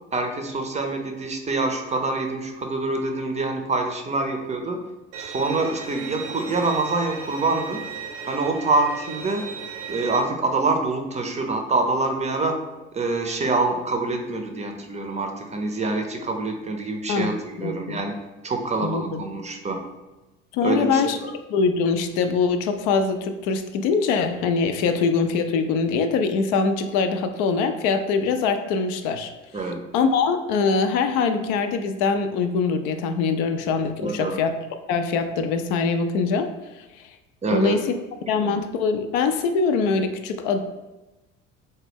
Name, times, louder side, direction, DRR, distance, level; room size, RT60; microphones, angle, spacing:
voice 1, 0.1-4.8 5.2-7.9 8.3-9.5 9.9-12.6 12.9-18.1 18.4-19.8 20.6-21.3 29.5-29.8 34.0-34.4 37.4-37.7 38.4-38.5, right 3 dB, 20° right, 4 dB, 0.6 m, -25 dB
Bowed string instrument, 5.1-10.2, right 6 dB, 75° right, 0.7 m, -36 dB
voice 2, 17.1-18.0 18.8-19.0 20.5-21.2 21.5-29.3 29.9-34.5 34.9-36.5 37.0-37.1 37.5-37.9 38.3-40.6, left 5 dB, 60° left, 8 dB, 0.5 m, -23 dB
3.9 x 2.1 x 3.5 m, 1.1 s
hypercardioid pair, 60°, 36 cm